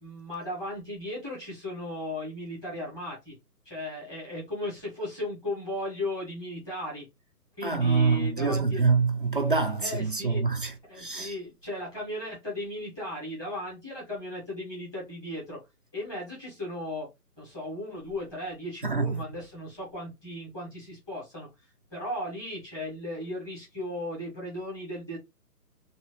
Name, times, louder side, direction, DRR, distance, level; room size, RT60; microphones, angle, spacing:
voice 1, 0.0-3.3 3.6-7.1 7.6-8.8 9.8-10.5 10.9-15.6 15.9-17.1 17.4-21.5 21.9-25.2, left 1 dB, 10° left, 1.3 m, -36 dB
voice 2, 7.6-11.4 18.8-19.2, right 4 dB, 35° right, 0.4 m, -26 dB
3.1 x 3.0 x 2.8 m
hypercardioid pair, 160°, 47 cm